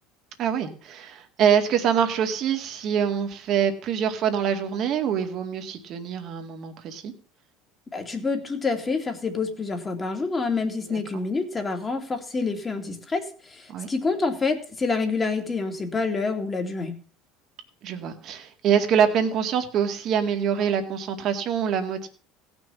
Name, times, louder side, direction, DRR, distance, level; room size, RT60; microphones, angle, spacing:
voice 1, 0.4-7.1 10.9-11.0 13.7-13.9 17.8-22.1, right 8 dB, 50° right, 6 dB, 2.1 m, -25 dB
voice 2, 7.9-16.9, left 4 dB, 20° left, 4 dB, 2.4 m, -27 dB
16.5 x 6.2 x 7.2 m, 0.41 s
supercardioid pair, 120°, 0 cm